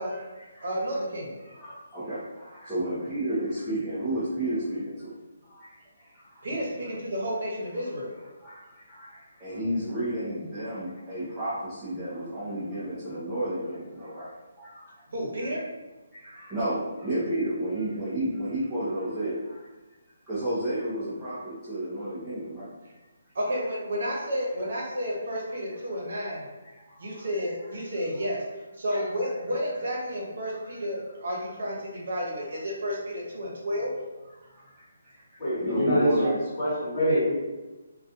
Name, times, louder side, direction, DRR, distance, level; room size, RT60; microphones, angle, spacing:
voice 1, 0.0-0.8 1.4-5.1 5.4-6.4 7.8-7.9 8.4-14.8 15.4-15.5 16.1-19.7 20.3-22.8 26.6-27.3 28.9-29.1 30.4-30.6 34.4-35.2 35.6-36.4, right 1 dB, 10° right, -13 dB, 0.5 m, -32 dB
voice 2, 0.6-1.4 6.4-8.1 15.1-15.6 23.3-26.4 27.0-28.4 28.8-33.9, equal, 65° right, -3 dB, 0.9 m, -31 dB
voice 3, 35.4-36.1 36.6-37.3, equal, 30° left, -9 dB, 1.3 m, -24 dB
2.3 x 2.3 x 2.7 m, 1.1 s
hypercardioid pair, 165°, 0 cm